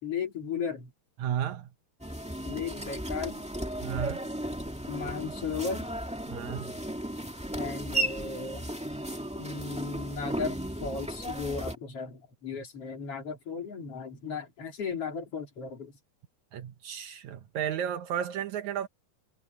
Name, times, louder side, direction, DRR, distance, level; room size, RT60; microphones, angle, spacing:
voice 1, 0.0-0.9 2.5-3.4 4.9-5.9 7.6-8.7 9.4-15.9, left 5 dB, 35° left, 4.3 m, -35 dB
voice 2, 1.2-1.7 3.8-4.2 6.3-6.7 16.5-18.9, right 9 dB, 75° right, 1.7 m, -33 dB
sound 1, 2.0-11.7, right 1 dB, 5° right, 0.6 m, -35 dB
omnidirectional pair, 4.7 m